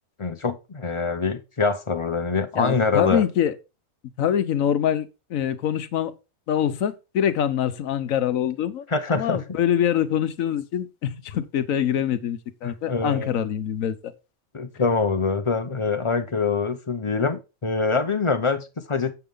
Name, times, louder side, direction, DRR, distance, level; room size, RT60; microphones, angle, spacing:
voice 1, 0.2-3.2 8.9-9.4 12.6-13.3 14.5-19.1, left 4 dB, 30° left, 0.6 m, -24 dB
voice 2, 2.5-3.5 4.2-6.1 6.5-14.1, left 9 dB, 70° left, 1.1 m, -24 dB
7.7 x 7.0 x 3.7 m
omnidirectional pair, 1.5 m